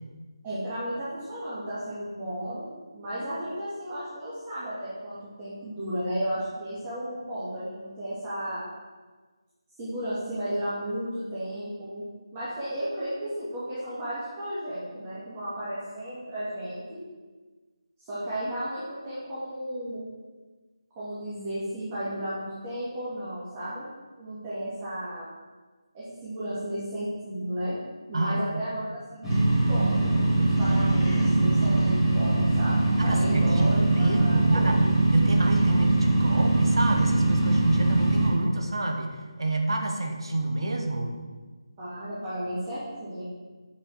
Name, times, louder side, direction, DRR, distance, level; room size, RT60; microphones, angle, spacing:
voice 1, 0.4-8.6 9.8-12.0 12.3-17.0 18.0-20.0 21.0-23.8 24.2-25.3 25.9-27.7 28.1-34.8 41.8-43.2, equal, 15° right, -12 dB, 2.7 m, -34 dB
sound 1, 29.2-38.3, right 2 dB, ahead, 2.1 m, -22 dB
voice 2, 33.0-34.8 35.1-41.1, right 2 dB, 60° right, 4 dB, 1.8 m, -28 dB
8.1 x 7.3 x 7.6 m, 1.3 s
figure-of-eight pair, 170°, 3 cm